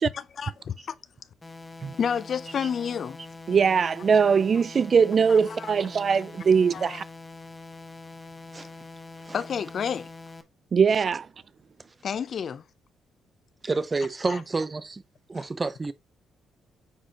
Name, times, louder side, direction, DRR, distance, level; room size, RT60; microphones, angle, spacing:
voice 1, 0.1-0.9 2.0-3.2 5.3-5.7 6.7-7.0 9.3-10.1 12.0-12.6 14.3-14.4 15.3-15.5, left 7 dB, 55° left, 0.6 m, -30 dB
sound 1, 1.4-10.4, left 3 dB, 20° left, 1.1 m, -44 dB
voice 2, 3.5-7.0 10.7-11.3, right 6 dB, 45° right, 0.3 m, -21 dB
voice 3, 13.6-15.0 15.3-15.9, right 3 dB, 25° right, 0.8 m, -29 dB
9.4 x 4.1 x 3.0 m
cardioid pair, 90°, 0 cm